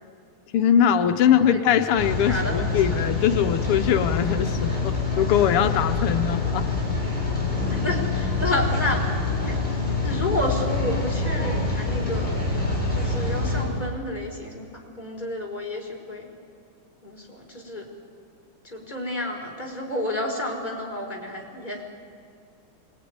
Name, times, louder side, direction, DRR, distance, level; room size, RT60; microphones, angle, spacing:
voice 1, 0.5-6.7, left 9 dB, 90° left, 7 dB, 1.9 m, -21 dB
Rain, 2.0-13.6, left 3 dB, 5° left, 7.8 m, -26 dB
voice 2, 7.8-9.0 9.4-9.5 10.0-12.4 12.9-14.7 15.0-16.3 17.0-17.2 17.5-17.8 18.7-21.8, left 1 dB, 20° left, -1 dB, 4.9 m, -30 dB
25.0 x 22.0 x 9.6 m, 2.3 s
omnidirectional pair, 2.4 m